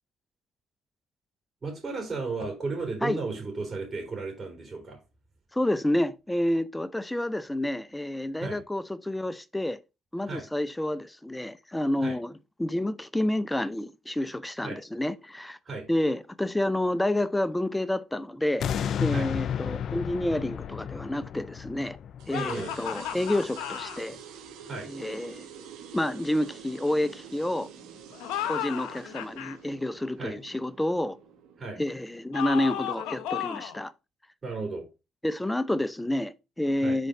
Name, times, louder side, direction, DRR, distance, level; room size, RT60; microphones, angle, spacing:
voice 1, 1.6-5.0 8.4-8.6 10.2-10.5 12.0-12.2 14.6-14.8 15.6-15.9 19.1-19.3 22.3-22.8 24.6-24.9 30.2-30.4 31.6-31.8 34.4-34.9 36.8-37.0, right 3 dB, 35° right, 3.1 m, -34 dB
voice 2, 5.5-9.8 10.1-12.3 12.6-15.6 15.9-18.7 19.0-22.0 22.3-24.2 24.9-25.5 25.9-27.7 28.4-31.2 31.8-33.9 35.2-37.1, left 1 dB, 10° left, 0.6 m, -29 dB
sound 1, 18.6-23.7 24.2-24.3, left 8 dB, 60° left, 0.4 m, -33 dB
sound 2, 22.2-33.2, right 7 dB, 80° right, 1.4 m, -48 dB
sound 3, 22.3-24.0 28.1-29.6 32.3-33.8, left 10 dB, 85° left, 0.8 m, -34 dB
5.1 x 4.4 x 4.9 m
supercardioid pair, 70°, 0 cm